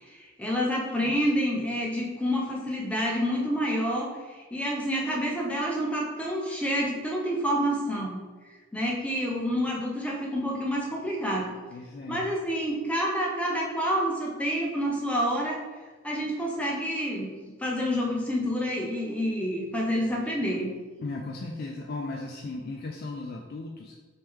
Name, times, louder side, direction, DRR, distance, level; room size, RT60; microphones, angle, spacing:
voice 1, 0.4-8.2 8.7-11.5 12.1-15.6 16.0-17.3 17.6-20.7, equal, 5° left, -3 dB, 0.6 m, -28 dB
voice 2, 11.7-12.3 21.0-24.0, left 2 dB, 50° left, 1 dB, 0.3 m, -36 dB
3.2 x 3.1 x 3.5 m, 1.3 s
head